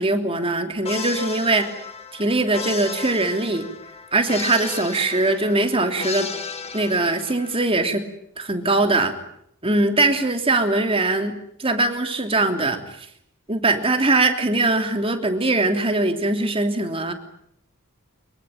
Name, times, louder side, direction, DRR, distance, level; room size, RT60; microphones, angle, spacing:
voice 1, 0.0-1.7 2.1-3.7 4.1-6.3 6.7-8.0 8.4-9.1 9.6-12.8 13.5-17.1, right 2 dB, 25° right, 5 dB, 3.1 m, -21 dB
sound 1, 0.9-7.7, left 5 dB, 30° left, 1.9 m, -34 dB
24.5 x 23.0 x 9.2 m, 0.71 s
head